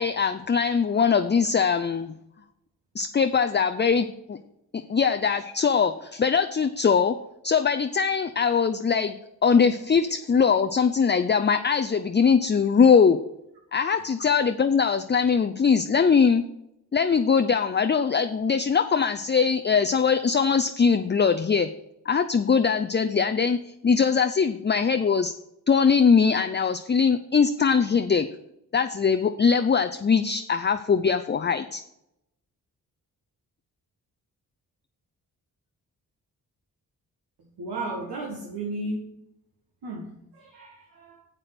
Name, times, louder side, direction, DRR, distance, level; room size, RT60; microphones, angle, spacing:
voice 1, 0.0-2.1 3.0-4.4 4.7-7.1 7.4-9.2 9.4-13.2 13.7-16.4 16.9-21.7 22.1-23.6 23.8-25.3 25.7-28.3 28.7-31.8, left 6 dB, 25° left, 9 dB, 0.6 m, -21 dB
voice 2, 37.6-39.2 39.8-41.2, right 2 dB, 70° right, -1 dB, 1.9 m, -34 dB
7.5 x 6.6 x 6.0 m, 0.82 s
supercardioid pair, 40°, 42 cm